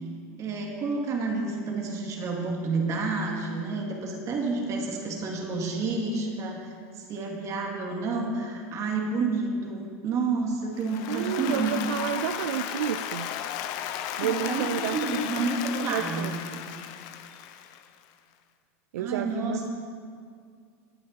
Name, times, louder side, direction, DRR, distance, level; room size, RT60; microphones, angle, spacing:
voice 1, 0.4-11.8 14.2-16.4 19.0-19.7, right 3 dB, 45° right, 0 dB, 2.2 m, -30 dB
Applause, 10.8-18.0, left 10 dB, 60° left, 0.7 m, -35 dB
voice 2, 11.1-13.3 14.2-15.2 15.7-16.3 18.9-19.6, right 11 dB, 80° right, 9 dB, 0.4 m, -30 dB
19.5 x 9.3 x 2.9 m, 2.1 s
hypercardioid pair, 100°, 8 cm